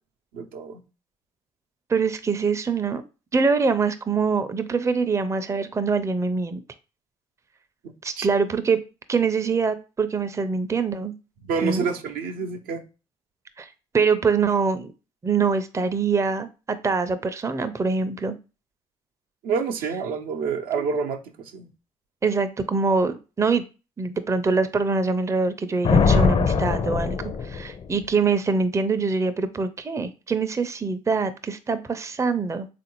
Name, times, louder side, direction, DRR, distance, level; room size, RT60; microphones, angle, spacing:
voice 1, 0.3-0.8 7.8-8.3 11.4-12.8 19.4-21.7, right 5 dB, 75° right, 0.6 m, -28 dB
voice 2, 1.9-3.0 3.3-6.6 8.0-8.8 9.1-11.1 11.6-11.9 13.6-13.7 13.9-14.9 15.2-18.4 20.8-20.9 22.2-23.6 24.0-32.7, right 4 dB, 20° right, 0.4 m, -24 dB
Thunder, 25.8-28.0, left 5 dB, 40° left, 0.5 m, -21 dB
3.6 x 2.5 x 3.0 m
supercardioid pair, 60°, 15 cm